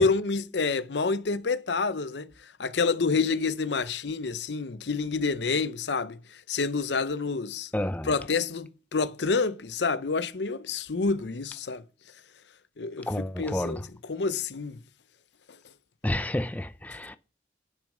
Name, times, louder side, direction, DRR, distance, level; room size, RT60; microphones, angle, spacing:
voice 1, 0.0-7.7 8.1-11.8 12.8-13.1 13.4-13.8 14.1-14.8 15.5-15.6, left 4 dB, 70° left, 0.7 m, -28 dB
voice 2, 7.7-8.2 13.1-13.9 16.0-17.2, left 1 dB, 10° left, 0.4 m, -30 dB
11.0 x 6.2 x 6.4 m
head